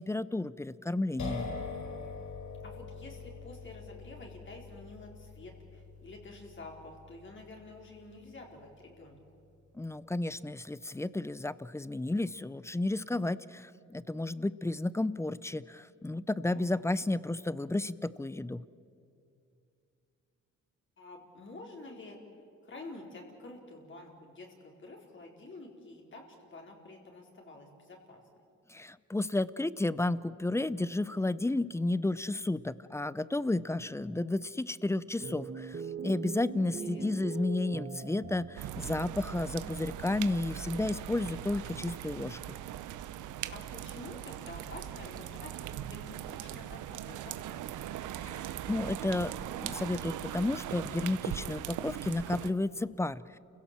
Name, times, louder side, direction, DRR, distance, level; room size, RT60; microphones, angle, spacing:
voice 1, 0.0-1.5 9.7-18.6 28.7-42.6 48.2-48.4 48.7-49.3 49.6-53.4, left 2 dB, 10° left, 18 dB, 0.5 m, -32 dB
sound 1, 1.2-8.8, left 4 dB, 70° left, 4.5 m, -44 dB
voice 2, 2.6-9.2 16.5-16.8 21.0-22.2 22.6-28.2 36.6-37.5 43.5-47.6, left 2 dB, 40° left, 0 dB, 4.1 m, -49 dB
sound 2, 35.2-38.9, right 6 dB, 35° right, 1.4 m, -41 dB
sound 3, 38.6-52.5, right 11 dB, 80° right, 0.9 m, -40 dB
29.0 x 16.5 x 7.4 m, 2.5 s
cardioid pair, 90°, 30 cm